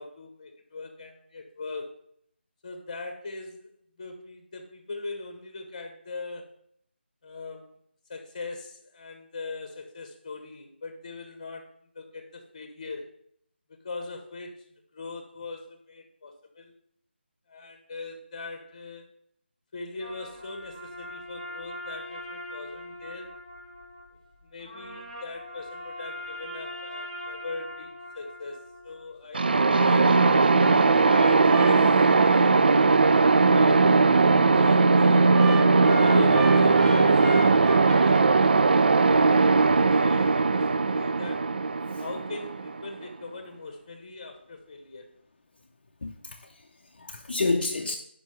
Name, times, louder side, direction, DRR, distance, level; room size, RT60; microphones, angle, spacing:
voice 1, 0.0-1.9 2.6-3.7 4.0-6.5 7.2-7.7 8.1-11.7 11.9-13.1 13.7-14.6 14.9-16.7 17.5-19.1 19.7-23.3 24.4-30.5 31.2-32.6 32.9-34.0 34.5-35.4 36.0-39.5 39.9-41.5 42.0-45.1, left 3 dB, 30° left, 1.2 m, -40 dB
sound 1, 20.0-24.1 24.6-29.0 29.5-34.7 35.3-38.2, equal, 30° right, 1.2 m, -38 dB
sound 2, 29.3-43.0, right 4 dB, 55° right, 0.4 m, -19 dB
voice 2, 46.0-48.0, left 3 dB, 50° left, 0.6 m, -30 dB
6.0 x 5.3 x 5.6 m
figure-of-eight pair, 160°, 6 cm